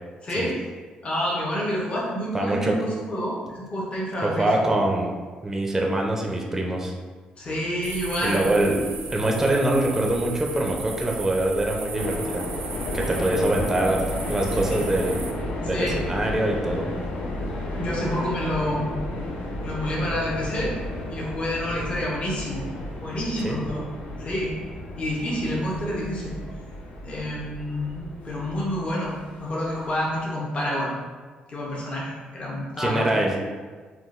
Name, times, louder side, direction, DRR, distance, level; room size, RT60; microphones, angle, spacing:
voice 1, 0.2-0.5 1.0-4.5 7.4-8.4 15.7-16.0 17.8-19.0 19.6-20.7 21.1-22.6 23.0-23.8 24.2-24.5 25.0-26.3 27.0-30.9 31.5-33.1, equal, 40° left, -5 dB, 0.8 m, -28 dB
voice 2, 2.3-2.8 4.2-5.1 5.4-6.9 8.2-8.8 9.1-12.5 12.9-15.2 15.6-16.9 23.4-23.6 32.8-33.4, right 1 dB, 15° right, 0 dB, 0.4 m, -24 dB
sound 1, 7.8-15.3, right 4 dB, 75° right, 0.5 m, -36 dB
sound 2, 11.9-30.3, left 1 dB, 75° left, 0.5 m, -33 dB
3.7 x 2.3 x 2.4 m, 1.4 s
cardioid pair, 100°, 3 cm